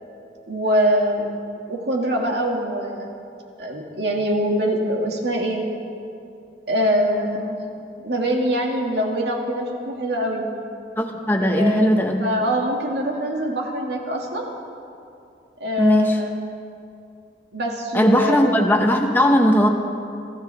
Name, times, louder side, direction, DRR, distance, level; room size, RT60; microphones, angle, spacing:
voice 1, 0.5-1.3 1.7-3.1 3.6-5.6 6.7-7.6 8.0-10.4 11.4-14.5 15.6-16.3 17.5-18.5, equal, 70° right, 0 dB, 2.2 m, -23 dB
voice 2, 11.0-12.3 15.8-16.2 17.9-19.7, equal, 10° left, 2 dB, 1.0 m, -18 dB
24.5 x 14.0 x 3.5 m, 2.6 s
head